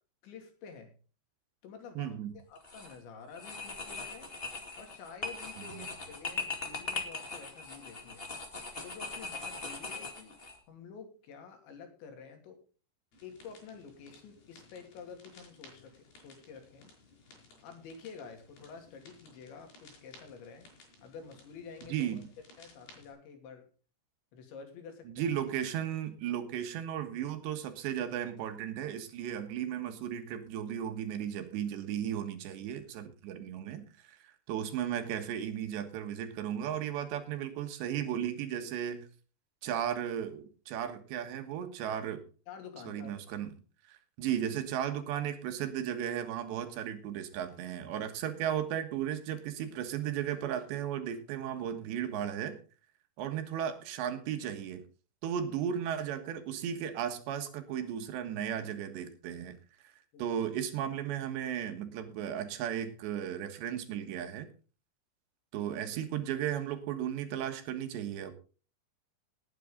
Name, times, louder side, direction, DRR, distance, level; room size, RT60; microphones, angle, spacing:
voice 1, 0.2-0.9 1.6-4.3 4.8-8.3 8.8-10.4 10.7-12.6 13.2-16.9 17.6-20.7 21.0-22.2 22.6-23.7 24.3-25.3 42.5-43.1 60.1-60.2, left 6 dB, 80° left, 5 dB, 5.1 m, -49 dB
voice 2, 2.0-2.3 5.6-5.9 21.8-22.3 25.1-39.1 39.6-42.2 42.9-43.5 43.9-52.6 53.2-54.8 55.2-59.6 59.8-59.9 60.2-64.5 65.5-68.3, right 9 dB, 75° right, 8 dB, 3.6 m, -35 dB
sound 1, 2.5-2.9 3.3-10.6, left 3 dB, 35° left, 0.9 m, -40 dB
sound 2, 13.1-23.1, left 3 dB, 60° left, 7.3 m, -58 dB
19.5 x 9.4 x 3.8 m, 0.36 s
omnidirectional pair, 5.2 m